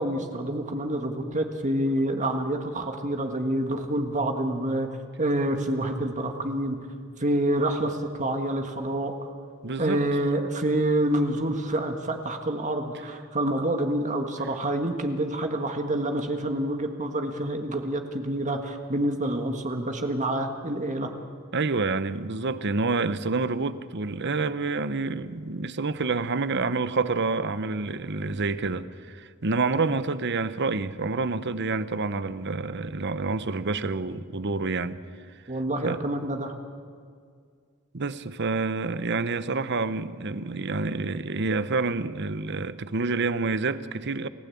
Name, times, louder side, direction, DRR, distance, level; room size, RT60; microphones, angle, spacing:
voice 1, 0.0-4.9 5.2-6.8 7.2-9.3 9.8-21.1 35.5-36.5, right 1 dB, 35° right, 1.7 m, -27 dB
voice 2, 9.6-10.0 21.5-35.0 35.8-36.0 37.9-44.3, right 3 dB, 55° right, 0.9 m, -28 dB
29.5 x 16.0 x 8.5 m
head